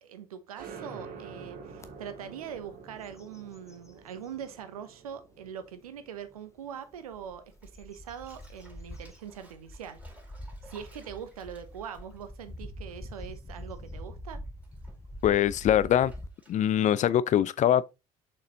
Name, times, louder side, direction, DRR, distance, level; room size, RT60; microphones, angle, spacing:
voice 1, 0.0-10.0 10.6-14.4, right 8 dB, 80° right, 0.8 m, -42 dB
sound 1, 0.6-7.8, right 5 dB, 50° right, 1.6 m, -48 dB
sound 2, 1.8-1.9 2.4-2.7 3.0-4.5 5.1-5.2 6.9-16.3, left 1 dB, 15° left, 0.8 m, -44 dB
Bathtub (filling or washing), 7.5-13.3 13.6-17.2, right 1 dB, 10° right, 4.1 m, -59 dB
voice 2, 15.2-16.1 16.5-17.9, left 10 dB, 40° left, 0.5 m, -23 dB
6.6 x 5.4 x 2.9 m
figure-of-eight pair, 55°, 18 cm